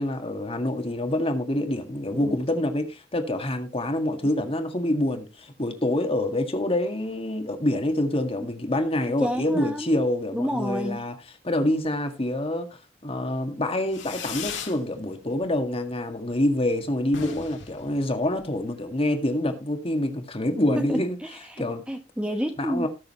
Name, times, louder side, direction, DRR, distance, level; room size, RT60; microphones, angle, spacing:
voice 1, 0.0-11.1 11.4-21.2 21.6-21.8 22.6-22.9, left 1 dB, 30° left, 1.9 m, -26 dB
voice 2, 9.2-10.0 10.3-11.0 20.7-22.9, equal, 5° right, 0.9 m, -30 dB
Fireworks, 13.9-14.8 15.2-15.7 16.0-16.1 16.3-16.4 16.7-16.8 17.0-18.7, left 7 dB, 75° left, 2.6 m, -38 dB
19.0 x 6.7 x 3.1 m
head